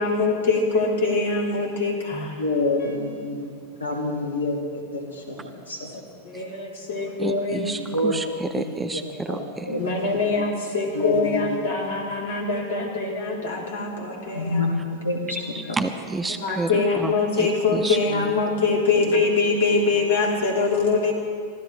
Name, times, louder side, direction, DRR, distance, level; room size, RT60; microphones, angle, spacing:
voice 1, 0.0-2.4 2.8-2.9 6.2-7.7 9.8-14.7 16.4-21.1, left 3 dB, 60° left, -1 dB, 3.4 m, -23 dB
voice 2, 2.4-3.5 3.8-4.6 4.9-5.9 7.7-8.1 8.6-8.8 9.3-9.4 9.7-9.8 10.4-10.5 10.9-11.6 14.3-15.4 15.7-15.8 18.1-18.2 19.1-19.2, left 2 dB, 75° left, 0 dB, 2.6 m, -27 dB
voice 3, 6.2-6.6 7.2-9.7 15.3-18.0, right 3 dB, 15° right, 8 dB, 0.8 m, -31 dB
25.0 x 15.0 x 3.3 m, 2.1 s
figure-of-eight pair, 90°, 0 cm